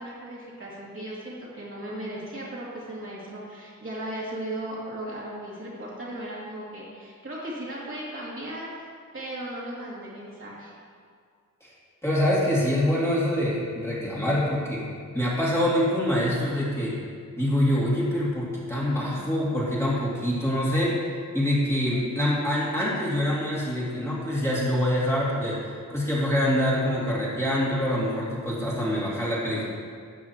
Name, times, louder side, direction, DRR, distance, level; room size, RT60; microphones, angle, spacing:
voice 1, 0.0-10.7, right 1 dB, 40° right, -6 dB, 2.6 m, -37 dB
voice 2, 12.0-14.9 15.1-17.0 17.3-21.0 21.3-29.6, left 1 dB, 10° left, -8 dB, 2.7 m, -25 dB
13.0 x 8.2 x 3.0 m, 2.1 s
wide cardioid pair, 105°, 33 cm